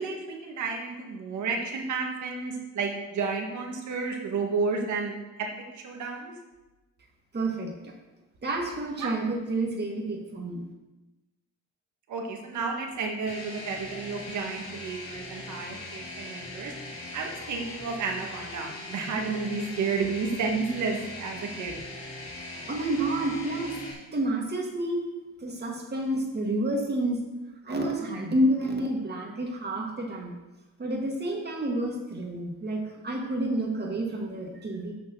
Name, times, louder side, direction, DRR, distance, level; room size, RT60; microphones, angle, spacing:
voice 1, 0.0-5.5 5.7-6.3 9.0-9.1 12.1-16.7 17.1-21.8, right 4 dB, 75° right, 2 dB, 1.8 m, -31 dB
voice 2, 7.3-7.9 8.4-10.6 22.7-23.8 24.1-25.0 25.4-27.2 27.6-30.4 30.8-34.9, right 1 dB, 35° right, 1 dB, 2.2 m, -29 dB
sound 1, 13.3-23.9, left 2 dB, 75° left, 3.5 m, -40 dB
7.0 x 6.1 x 6.8 m, 1.1 s
cardioid pair, 90°, 30 cm